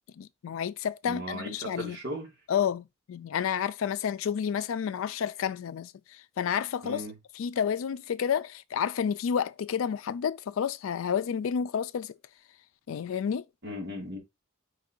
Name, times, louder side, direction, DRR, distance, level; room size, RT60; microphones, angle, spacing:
voice 1, 0.2-2.0 2.5-7.0 7.4-12.2 12.9-13.4, left 8 dB, 80° left, 0.3 m, -30 dB
voice 2, 1.0-2.3 6.8-7.1 13.6-14.2, equal, 60° right, 2.0 m, -37 dB
4.5 x 2.5 x 4.3 m
head